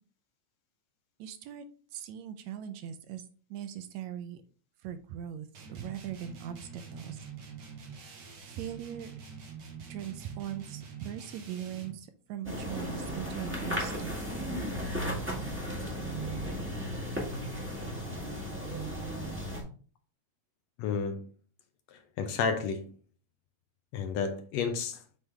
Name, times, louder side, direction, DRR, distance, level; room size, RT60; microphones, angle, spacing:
voice 1, 1.2-1.6 1.9-3.2 3.5-4.4 4.8-7.2 8.4-9.1 9.9-14.2, right 10 dB, 80° right, 1.9 m, -40 dB
sound 1, 5.5-12.0, right 6 dB, 60° right, 1.2 m, -46 dB
sound 2, 12.4-19.6, equal, 5° right, 1.1 m, -35 dB
voice 2, 20.8-21.3 21.9-22.9 23.9-25.0, left 5 dB, 75° left, 1.8 m, -31 dB
7.9 x 3.7 x 3.3 m
omnidirectional pair, 3.3 m